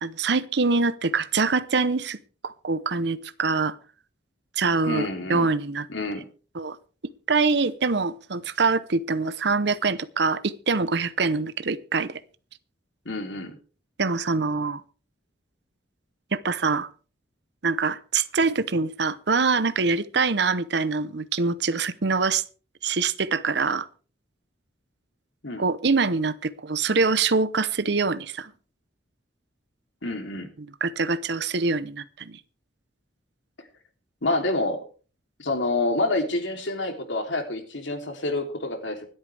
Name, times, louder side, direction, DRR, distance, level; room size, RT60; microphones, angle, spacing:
voice 1, 0.0-2.2 2.4-3.7 4.6-5.9 6.5-6.8 7.3-12.2 14.0-14.8 16.3-16.9 17.6-22.4 22.8-23.9 25.6-28.5 30.8-32.4, right 4 dB, 60° right, 14 dB, 0.8 m, -24 dB
voice 2, 4.8-5.5 5.9-6.2 13.0-13.6 25.4-25.6 30.0-30.5 34.2-34.8 35.4-39.0, left 2 dB, 80° left, 4 dB, 3.2 m, -27 dB
25.0 x 8.7 x 3.4 m, 0.38 s
head